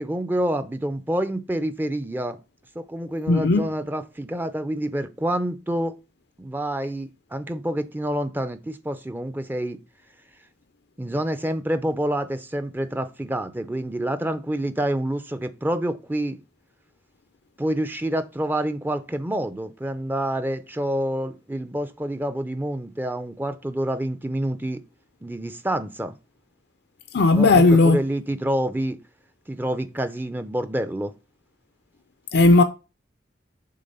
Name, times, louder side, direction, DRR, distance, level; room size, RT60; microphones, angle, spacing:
voice 1, 0.0-2.4 2.8-6.0 6.4-9.8 11.0-16.4 17.6-24.8 25.2-26.1 27.3-29.0 29.5-31.1, right 1 dB, 10° right, 0.5 m, -27 dB
voice 2, 3.3-3.7 27.1-28.0 32.3-32.6, left 3 dB, 60° left, 0.5 m, -16 dB
7.6 x 3.8 x 5.4 m
head